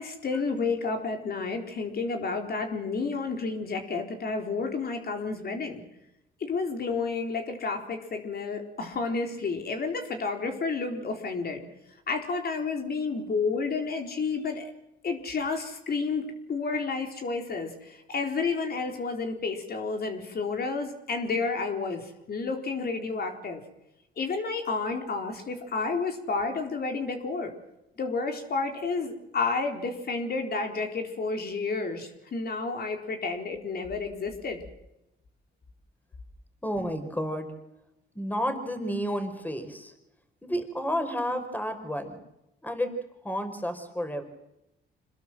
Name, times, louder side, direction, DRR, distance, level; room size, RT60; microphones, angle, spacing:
voice 1, 0.0-5.8 6.4-11.6 12.1-14.7 15.0-23.6 24.2-27.5 28.0-34.6, left 4 dB, 50° left, 4 dB, 4.1 m, -31 dB
voice 2, 36.6-37.5 38.2-39.9 40.4-42.2 42.6-42.9 43.2-44.2, equal, 10° left, 8 dB, 5.2 m, -31 dB
27.5 x 21.0 x 7.6 m, 0.88 s
cardioid pair, 90°, 20 cm